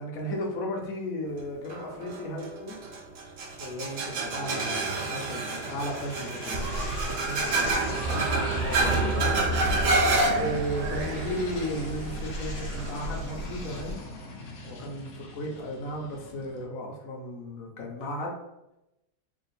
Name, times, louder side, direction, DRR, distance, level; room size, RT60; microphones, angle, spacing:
voice 1, 0.0-2.8 3.5-9.3 10.3-14.0 14.6-18.4, equal, 60° left, 0 dB, 1.0 m, -35 dB
sound 1, 1.7-13.0, right 2 dB, 65° right, 0.8 m, -29 dB
sound 2, 5.2-16.7, left 3 dB, 80° left, 0.6 m, -42 dB
sound 3, 6.5-13.9, right 1 dB, 85° right, 1.3 m, -36 dB
3.5 x 2.5 x 3.9 m, 0.90 s
omnidirectional pair, 2.0 m